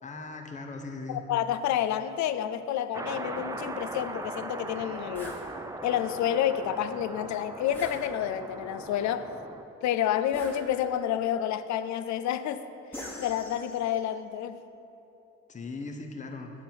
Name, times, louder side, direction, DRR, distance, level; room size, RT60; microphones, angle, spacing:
voice 1, 0.0-1.2 15.5-16.5, left 3 dB, 25° left, 4 dB, 0.7 m, -39 dB
voice 2, 1.1-5.4 5.8-9.3 9.8-12.6 13.2-14.6, left 10 dB, 70° left, 12 dB, 0.4 m, -29 dB
sound 1, 2.9-9.6, right 2 dB, 10° right, 0.3 m, -39 dB
sound 2, 5.1-5.5 7.7-8.5 10.3-11.1 12.9-14.0, left 1 dB, 5° left, 1.2 m, -43 dB
7.3 x 4.4 x 6.0 m, 2.9 s
cardioid pair, 90°, 30 cm